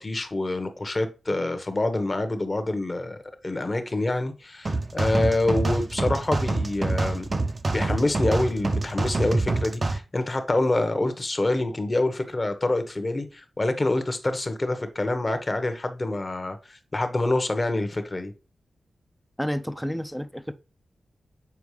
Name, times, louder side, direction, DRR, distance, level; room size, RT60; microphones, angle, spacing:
voice 1, 0.0-3.2 3.4-7.3 7.7-18.3, left 2 dB, 30° left, 1.1 m, -26 dB
sound 1, 4.7-10.0, right 2 dB, 35° right, 0.7 m, -26 dB
voice 2, 19.4-20.5, equal, ahead, 0.6 m, -30 dB
7.0 x 4.5 x 3.2 m
wide cardioid pair, 85°, 0 cm